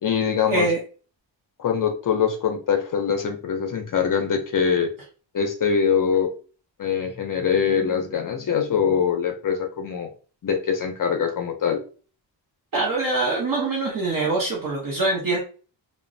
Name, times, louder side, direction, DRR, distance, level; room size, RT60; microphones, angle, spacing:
voice 1, 0.0-0.7 1.6-4.9 5.3-6.3 6.8-10.1 10.4-11.8, left 7 dB, 45° left, 4 dB, 0.5 m, -23 dB
voice 2, 12.7-15.4, right 3 dB, 45° right, -3 dB, 0.8 m, -24 dB
2.9 x 2.0 x 2.6 m, 0.38 s
wide cardioid pair, 165°, 46 cm